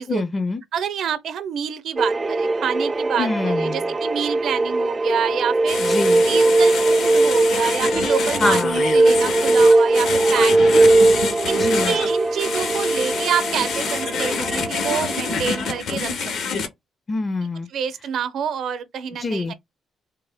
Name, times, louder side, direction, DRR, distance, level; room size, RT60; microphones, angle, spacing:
voice 1, 0.1-0.6 3.2-3.9 5.8-6.2 8.4-8.9 11.5-12.0 17.1-17.7 19.2-19.5, left 3 dB, 35° left, 0.4 m, -25 dB
voice 2, 0.7-5.8 6.3-8.6 8.9-11.0 11.4-16.1 16.5-16.7 17.7-19.5, right 8 dB, 70° right, 0.6 m, -27 dB
sound 1, 2.0-15.8, right 2 dB, 25° right, 0.4 m, -20 dB
sound 2, 5.7-16.7, left 5 dB, 70° left, 0.7 m, -27 dB
3.3 x 2.1 x 3.4 m
cardioid pair, 90°, 0 cm